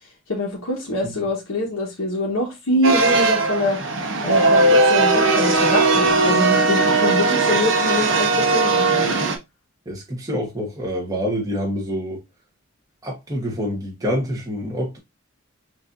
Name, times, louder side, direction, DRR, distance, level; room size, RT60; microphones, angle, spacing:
voice 1, 0.3-3.8 4.2-9.2, left 1 dB, 80° left, 1.1 m, -24 dB
sound 1, 2.8-9.4, right 3 dB, 60° right, 0.8 m, -18 dB
voice 2, 9.9-12.2 13.0-15.0, equal, 15° right, 1.0 m, -26 dB
6.3 x 2.6 x 2.5 m
head